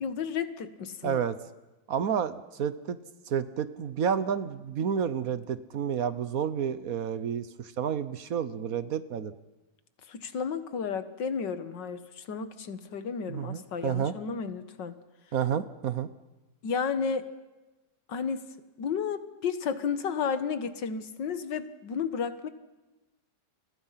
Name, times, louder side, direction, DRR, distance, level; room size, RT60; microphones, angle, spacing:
voice 1, 0.0-1.2 10.1-15.0 16.6-17.3 18.1-18.4 18.8-22.5, left 6 dB, 90° left, 11 dB, 2.0 m, -32 dB
voice 2, 1.0-1.4 1.9-3.0 3.3-9.3 13.3-14.1 15.3-16.1, right 8 dB, 60° right, 14 dB, 1.3 m, -30 dB
29.5 x 23.0 x 5.8 m, 1.1 s
omnidirectional pair, 1.9 m